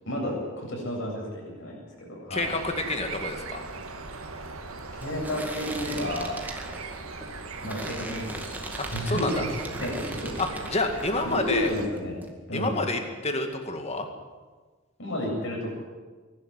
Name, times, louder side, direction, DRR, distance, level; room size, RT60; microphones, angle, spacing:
voice 1, 0.1-2.5 4.9-6.3 7.6-8.5 8.9-9.5 9.8-10.3 10.9-12.8 15.0-15.7, left 1 dB, 55° left, -1 dB, 7.9 m, -32 dB
voice 2, 2.3-3.6 8.8-9.5 10.4-11.7 12.5-14.1, left 2 dB, 30° left, 5 dB, 2.2 m, -29 dB
sound 1, 2.3-11.9, right 4 dB, 75° right, 2.1 m, -39 dB
sound 2, 3.7-11.3 11.6-12.3, right 1 dB, 10° right, 2.1 m, -40 dB
22.5 x 12.0 x 9.6 m, 1.4 s
head